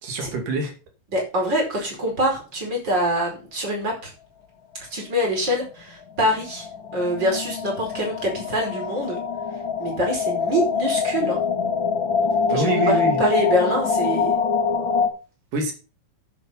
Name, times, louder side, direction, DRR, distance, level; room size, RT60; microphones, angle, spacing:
voice 1, 0.0-0.7 1.7-1.9 12.5-13.2 15.5-15.7, right 1 dB, 80° right, 4 dB, 4.2 m, -25 dB
voice 2, 1.1-4.1 4.9-6.7 6.9-9.2 9.8-11.4 12.5-14.4, equal, 30° right, 0 dB, 5.6 m, -25 dB
sound 1, 5.4-5.5 5.7-5.8 6.0-15.1, left 5 dB, 40° left, 2.5 m, -24 dB
10.0 x 8.5 x 5.7 m, 0.33 s
omnidirectional pair, 3.7 m